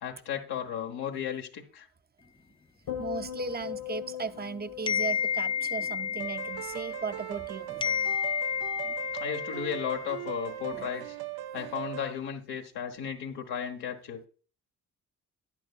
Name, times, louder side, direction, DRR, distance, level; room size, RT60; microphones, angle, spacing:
voice 1, 0.0-1.9 9.1-11.2 11.5-14.2, left 8 dB, 80° left, 1.3 m, -35 dB
sound 1, 2.9-7.3 7.6-8.0, left 11 dB, 60° left, 1.5 m, -41 dB
voice 2, 2.9-7.9 8.8-9.0 10.7-10.9, right 5 dB, 25° right, 0.7 m, -37 dB
sound 2, 4.9-7.5 7.8-10.4, left 8 dB, 15° left, 0.3 m, -31 dB
sound 3, 6.2-12.1, right 14 dB, 70° right, 0.5 m, -39 dB
11.0 x 9.1 x 2.4 m
supercardioid pair, 50°, 39 cm